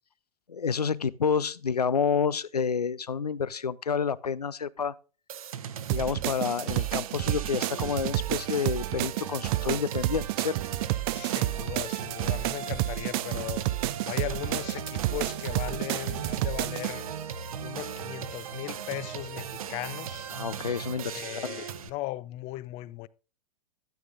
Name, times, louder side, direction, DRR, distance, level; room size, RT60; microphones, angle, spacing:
voice 1, 0.5-4.9 5.9-10.6 20.3-21.6, left 6 dB, 90° left, 0.5 m, -29 dB
sound 1, 5.3-21.9, right 8 dB, 65° right, 1.0 m, -38 dB
sound 2, 5.9-16.9, right 17 dB, 40° right, 0.4 m, -30 dB
voice 2, 11.1-13.6 14.1-17.0 17.6-20.3 21.1-23.1, left 17 dB, 30° left, 0.4 m, -37 dB
13.0 x 9.0 x 2.5 m
figure-of-eight pair, 100°, 19 cm